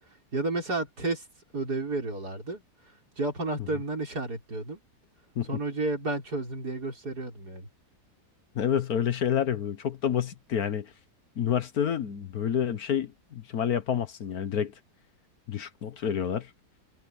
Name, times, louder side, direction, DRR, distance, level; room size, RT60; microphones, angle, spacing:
voice 1, 0.3-1.2 1.5-2.6 3.2-4.8 5.5-7.7, right 2 dB, 65° right, 6.5 m, -31 dB
voice 2, 8.5-10.9 11.4-14.7 15.5-16.5, left 8 dB, 65° left, 1.5 m, -28 dB
omnidirectional pair, 1.8 m